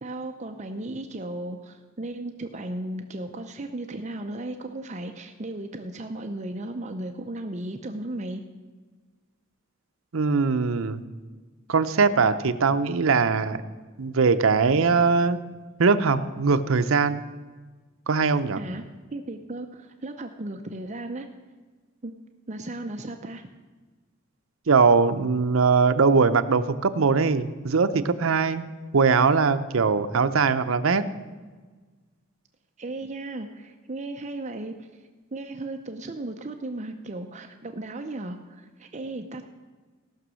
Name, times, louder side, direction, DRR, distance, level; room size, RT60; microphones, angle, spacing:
voice 1, 0.0-8.4 18.6-18.8 19.1-21.3 22.0-22.1 22.5-23.4 32.8-39.4, right 2 dB, 35° right, 5 dB, 0.6 m, -35 dB
voice 2, 10.1-11.0 11.7-13.6 14.0-15.4 15.8-17.2 18.1-18.6 24.7-28.6 28.9-31.0, right 4 dB, 75° right, 10 dB, 0.6 m, -21 dB
17.0 x 6.2 x 6.3 m, 1.4 s
head